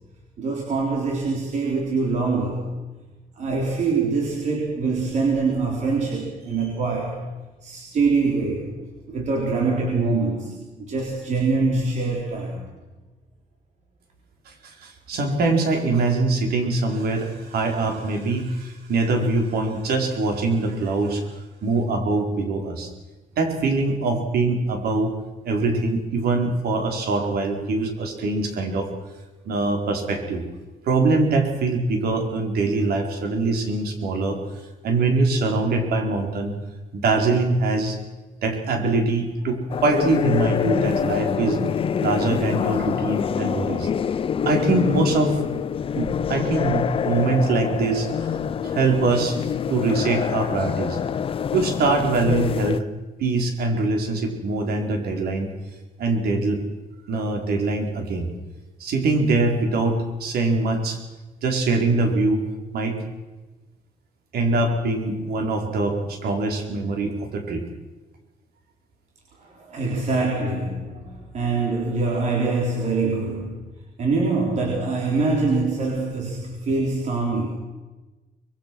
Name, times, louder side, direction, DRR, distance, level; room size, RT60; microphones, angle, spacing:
voice 1, 0.4-2.8 3.4-7.3 7.6-8.8 9.1-12.6 69.4-73.6 74.0-77.5, right 3 dB, 50° right, -1 dB, 4.0 m, -24 dB
voice 2, 14.5-21.2 21.6-22.9 23.4-25.1 25.4-28.9 29.4-30.4 30.8-34.4 34.8-36.5 36.9-38.0 38.4-41.6 42.0-43.9 44.4-45.4 45.9-48.3 48.6-49.4 49.7-51.0 51.5-52.8 53.2-55.5 56.0-56.6 57.1-58.3 58.8-61.0 61.4-62.4 62.7-63.0 64.3-67.6, right 3 dB, 85° right, 3 dB, 4.7 m, -23 dB
sound 1, 39.7-52.8, left 7 dB, 35° left, 0.6 m, -26 dB
24.5 x 22.0 x 6.2 m, 1.2 s
cardioid pair, 175°, 16 cm